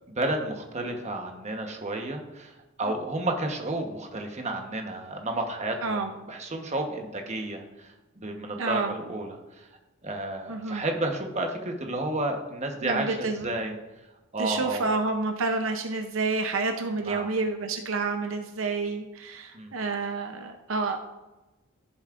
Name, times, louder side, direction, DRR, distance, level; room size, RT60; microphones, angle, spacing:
voice 1, 0.1-9.7 10.0-13.7 14.3-14.9 17.0-17.3 19.5-19.7, right 2 dB, 35° right, 3 dB, 1.1 m, -31 dB
voice 2, 8.6-8.9 10.5-10.8 12.8-13.5 14.4-21.0, right 3 dB, 70° right, 5 dB, 0.7 m, -29 dB
15.0 x 7.2 x 2.5 m, 1.1 s
head